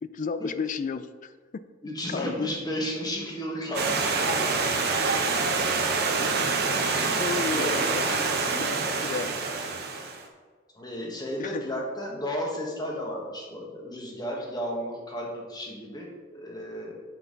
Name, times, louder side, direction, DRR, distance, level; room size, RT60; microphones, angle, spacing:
voice 1, 0.0-1.6 2.1-2.5 7.2-9.4 11.4-11.6, left 5 dB, 40° left, 12 dB, 0.3 m, -33 dB
voice 2, 1.8-4.5 6.8-8.0 10.7-16.9, equal, 20° left, -1 dB, 1.4 m, -33 dB
Stream, 3.7-10.2, right 4 dB, 55° right, 0.9 m, -26 dB
7.7 x 5.6 x 3.9 m, 1.5 s
head